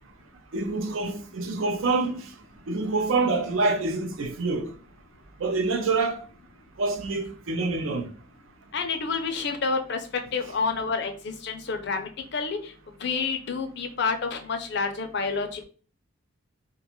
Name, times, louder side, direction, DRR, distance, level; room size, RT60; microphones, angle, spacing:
voice 1, 0.5-2.3 2.7-4.7 5.4-6.2 6.8-8.1, right 3 dB, 70° right, 0.5 m, -26 dB
voice 2, 8.7-12.7 13.0-15.6, left 4 dB, 55° left, 0.5 m, -29 dB
2.4 x 2.2 x 2.9 m
head